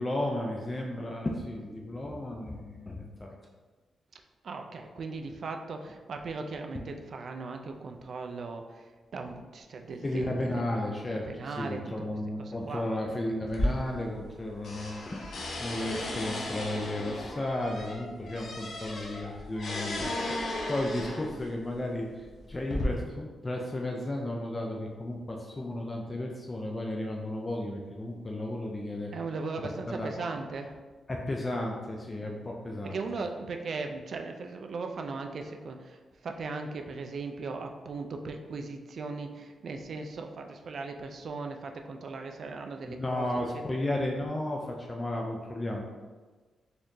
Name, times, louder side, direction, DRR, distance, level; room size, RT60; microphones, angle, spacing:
voice 1, 0.0-3.3 10.0-15.2 15.6-29.1 29.9-30.1 31.1-33.0 42.9-45.8, left 1 dB, 20° left, 0 dB, 0.4 m, -34 dB
voice 2, 4.4-8.8 9.1-10.6 11.3-11.9 12.4-12.9 29.1-30.8 32.8-43.3, right 4 dB, 55° right, 5 dB, 0.3 m, -38 dB
sound 1, 13.5-14.4 14.6-21.5 22.2-22.8, left 1 dB, 65° left, 0.7 m, -35 dB
4.1 x 2.9 x 2.6 m, 1.4 s
wide cardioid pair, 135°, 0 cm